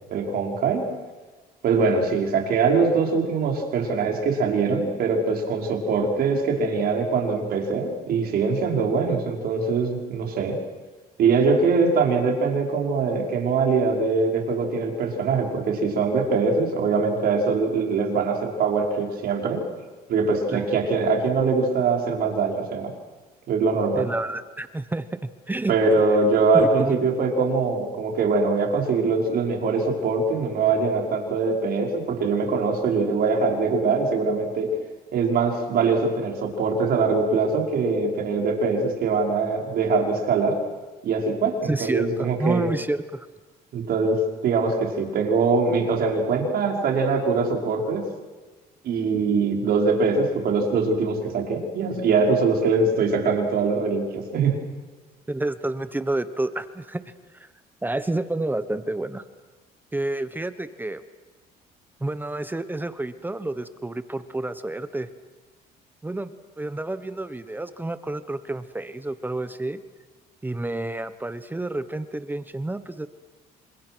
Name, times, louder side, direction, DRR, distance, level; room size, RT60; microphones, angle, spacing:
voice 1, 0.1-0.8 1.6-10.6 11.2-19.6 20.1-22.9 23.5-24.1 25.7-34.7 35.1-40.6 41.0-42.7 43.7-48.1 48.8-54.5, right 4 dB, 65° right, 1 dB, 5.5 m, -22 dB
voice 2, 23.9-25.7 26.5-27.0 41.6-43.3 55.3-57.0 57.3-57.5 57.8-59.2 59.9-61.0 62.0-65.1 66.0-66.3 66.6-69.8 70.4-73.1, right 2 dB, 10° right, 12 dB, 1.1 m, -29 dB
29.0 x 25.5 x 6.3 m, 1.3 s
cardioid pair, 110°, 17 cm